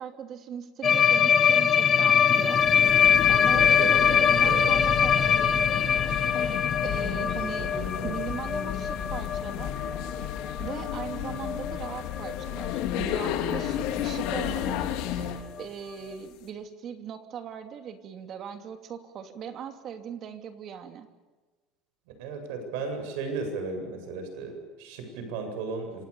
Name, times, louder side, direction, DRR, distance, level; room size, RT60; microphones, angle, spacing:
voice 1, 0.0-2.6 3.3-6.1 6.8-7.7 8.0-9.7 10.6-14.8 15.6-21.1, right 8 dB, 35° right, 7 dB, 2.8 m, -39 dB
sound 1, 0.8-12.7 13.0-13.2 13.5-13.7 14.0-14.1 14.4-14.5 15.6-15.7, left 7 dB, 25° left, 1.4 m, -23 dB
sound 2, 2.5-15.5, left 10 dB, 65° left, 3.8 m, -33 dB
voice 2, 3.6-4.8 7.1-8.1 22.2-26.1, right 4 dB, 90° right, 6 dB, 7.9 m, -35 dB
28.0 x 26.5 x 7.0 m, 1.3 s
cardioid pair, 175°, 0 cm